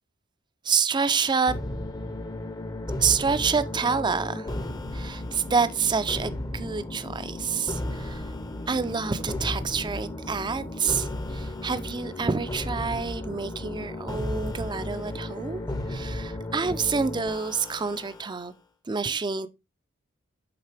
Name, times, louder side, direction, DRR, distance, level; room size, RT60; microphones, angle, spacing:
voice 1, 0.6-1.5 3.0-8.3 8.7-18.5 18.9-19.5, right 5 dB, 20° right, 0.4 m, -28 dB
sound 1, 1.5-18.4, left 1 dB, 20° left, 0.6 m, -34 dB
8.7 x 3.8 x 3.3 m
head